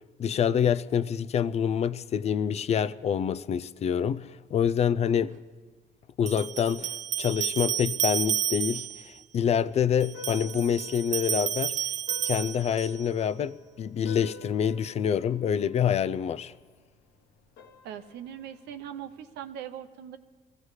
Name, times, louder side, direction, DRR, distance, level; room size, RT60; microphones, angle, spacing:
voice 1, 0.2-5.3 6.2-11.8 12.2-16.5, left 8 dB, 40° left, 0.4 m, -26 dB
sound 1, 5.0-5.1 6.3-9.1 10.0-13.1, right 10 dB, 45° right, 0.4 m, -31 dB
sound 2, 10.1-19.5, left 4 dB, 70° left, 1.1 m, -51 dB
voice 2, 17.8-20.2, right 9 dB, 80° right, 0.8 m, -40 dB
23.0 x 15.5 x 3.2 m
cardioid pair, 110°, 17 cm